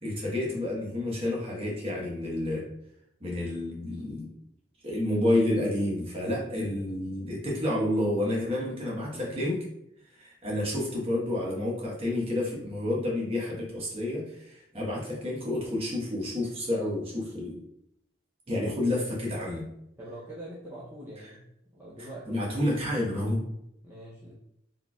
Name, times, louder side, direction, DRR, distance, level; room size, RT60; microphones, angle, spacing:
voice 1, 0.0-2.7 3.2-4.3 4.8-9.6 10.1-17.5 18.5-19.7 21.2-21.3 22.0-23.4, left 1 dB, 30° right, -4 dB, 1.1 m, -30 dB
voice 2, 20.0-22.5 23.8-24.3, right 1 dB, 10° right, -9 dB, 0.6 m, -44 dB
4.1 x 3.3 x 2.3 m, 0.79 s
head